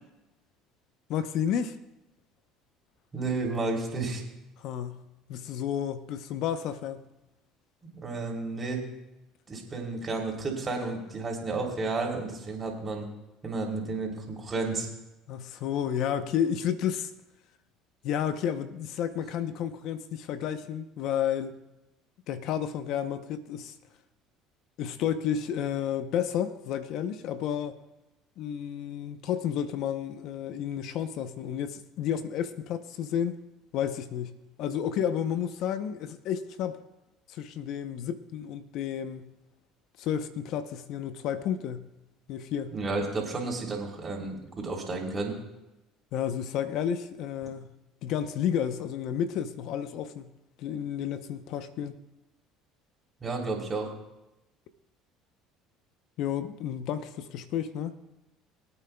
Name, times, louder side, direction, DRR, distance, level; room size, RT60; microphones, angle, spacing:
voice 1, 1.1-1.8 4.6-5.0 5.3-7.1 15.3-17.1 18.0-21.6 22.3-23.7 24.8-27.8 28.4-33.4 33.7-36.8 37.3-39.3 40.0-41.9 42.3-42.7 46.1-47.7 48.0-50.3 50.6-52.0 56.2-57.9, left 9 dB, 65° left, 11 dB, 0.7 m, -31 dB
voice 2, 3.1-4.2 8.0-8.8 9.5-13.1 13.4-14.9 42.7-45.3 53.2-53.9, right 3 dB, 30° right, 0 dB, 3.2 m, -32 dB
23.5 x 8.7 x 2.3 m, 0.95 s
supercardioid pair, 85°, 0 cm